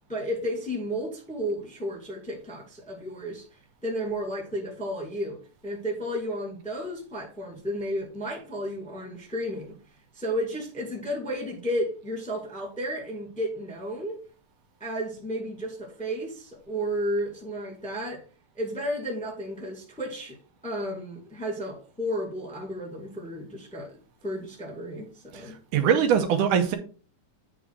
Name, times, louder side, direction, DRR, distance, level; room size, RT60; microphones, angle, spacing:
voice 1, 0.1-3.4 3.8-9.8 10.1-14.2 14.8-18.2 18.5-20.4 20.6-25.6, equal, 5° left, 1.4 m, -33 dB
voice 2, 25.3-26.8, right 8 dB, 75° right, 2.2 m, -23 dB
9.4 x 3.8 x 4.7 m
omnidirectional pair, 3.8 m